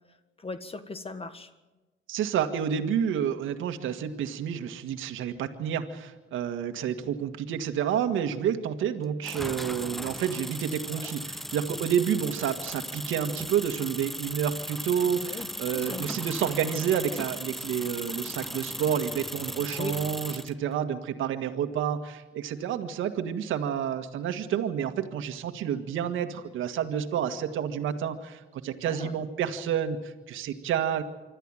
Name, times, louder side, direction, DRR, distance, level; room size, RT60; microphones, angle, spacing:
voice 1, 0.4-1.5 11.0-11.1 15.2-16.1 19.8-19.9 28.8-29.1, left 2 dB, 30° left, 11 dB, 1.6 m, -38 dB
voice 2, 2.1-31.0, right 8 dB, 85° right, 7 dB, 1.8 m, -29 dB
sound 1, 9.2-20.5, equal, ahead, 0.6 m, -37 dB
26.0 x 13.0 x 9.0 m, 1.2 s
cardioid pair, 90°, 20 cm